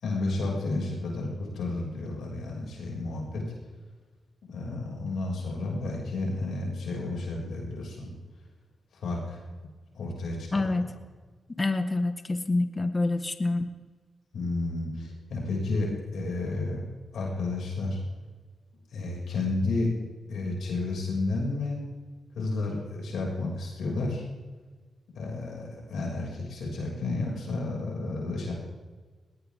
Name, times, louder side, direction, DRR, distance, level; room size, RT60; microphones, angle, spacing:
voice 1, 0.0-3.4 4.5-8.1 8.9-9.4 9.9-10.7 14.3-16.8 17.1-18.0 18.9-19.9 20.3-21.8 22.3-24.2 25.1-28.5, left 2 dB, 75° left, -2 dB, 6.4 m, -31 dB
voice 2, 10.5-10.8 11.6-13.7, left 2 dB, 35° left, 9 dB, 1.6 m, -27 dB
19.5 x 19.0 x 3.7 m, 1.4 s
supercardioid pair, 45°, 0 cm